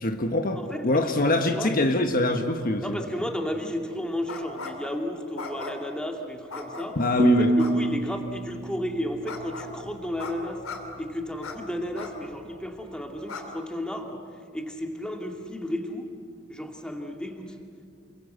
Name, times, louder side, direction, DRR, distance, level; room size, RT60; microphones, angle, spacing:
voice 1, 0.0-3.0 7.0-7.5, left 2 dB, 45° left, 5 dB, 1.3 m, -24 dB
voice 2, 2.8-10.6 11.0-14.2 14.5-16.1 16.5-17.5, left 1 dB, 5° left, 2 dB, 2.3 m, -33 dB
sound 1, 4.3-4.9 5.4-6.0 6.5-7.1 7.6-7.7 9.3-9.7 10.2-10.3 10.6-10.8 11.4-11.5 11.9-12.1 12.6-12.7 13.3-13.4, left 3 dB, 85° left, 3.1 m, -37 dB
sound 2, 7.2-10.1, right 2 dB, 30° right, 0.7 m, -26 dB
29.0 x 23.0 x 8.1 m, 2.4 s
head